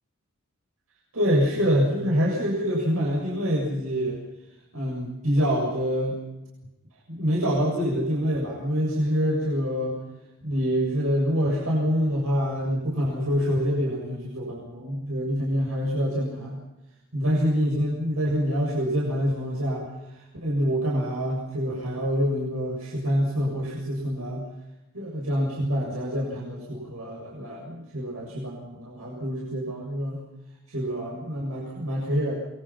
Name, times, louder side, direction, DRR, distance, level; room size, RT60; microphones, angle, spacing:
voice 1, 1.1-4.2 4.7-6.2 7.1-10.0 10.4-16.6 17.1-24.4 24.9-30.2 30.7-32.3, equal, 90° right, -3 dB, 7.4 m, -26 dB
28.5 x 22.5 x 6.0 m, 0.95 s
head